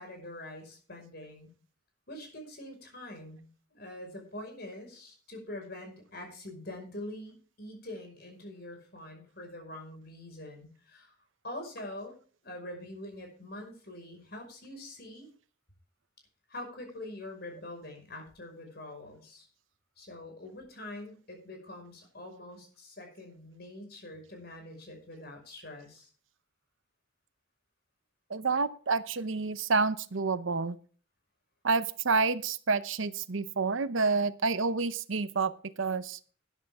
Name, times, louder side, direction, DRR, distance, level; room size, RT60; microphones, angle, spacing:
voice 1, 0.0-1.5 2.1-11.1 11.4-12.1 12.4-15.3 16.5-19.5 20.0-26.1, left 1 dB, 50° left, 3 dB, 5.5 m, -44 dB
voice 2, 28.3-30.8 31.6-35.5 35.8-36.2, right 4 dB, 75° right, 13 dB, 0.8 m, -28 dB
13.0 x 11.0 x 3.6 m, 0.42 s
head